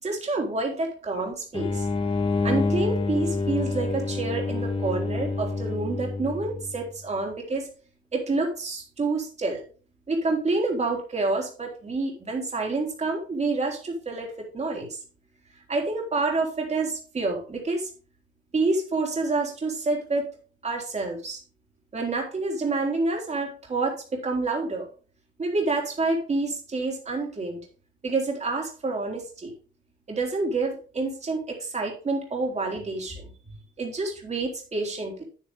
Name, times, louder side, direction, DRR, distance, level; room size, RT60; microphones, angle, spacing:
voice 1, 0.0-1.9 2.4-7.7 8.1-9.6 10.1-15.0 15.7-17.9 18.5-20.3 20.6-21.4 21.9-24.9 25.4-27.6 28.0-29.5 30.1-33.3 33.8-35.2, right 3 dB, 35° right, 0 dB, 3.6 m, -28 dB
sound 1, 1.5-6.9, left 3 dB, 25° left, 1.5 m, -28 dB
9.5 x 9.4 x 3.6 m, 0.38 s
cardioid pair, 90°, 20 cm